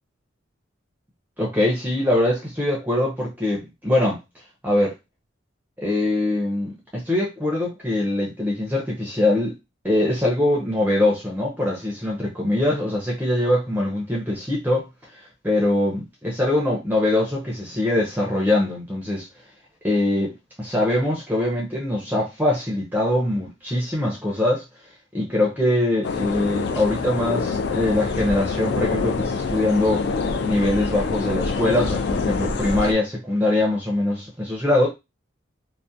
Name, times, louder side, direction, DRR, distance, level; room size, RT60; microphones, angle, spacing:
voice 1, 1.4-4.2 4.6-4.9 5.8-9.5 9.8-14.8 15.1-19.3 19.8-24.6 25.1-30.0 30.4-34.9, left 1 dB, 10° right, -2 dB, 0.5 m, -23 dB
sound 1, 26.0-32.9, left 4 dB, 55° left, 0.3 m, -25 dB
2.3 x 2.1 x 2.6 m, 0.23 s
head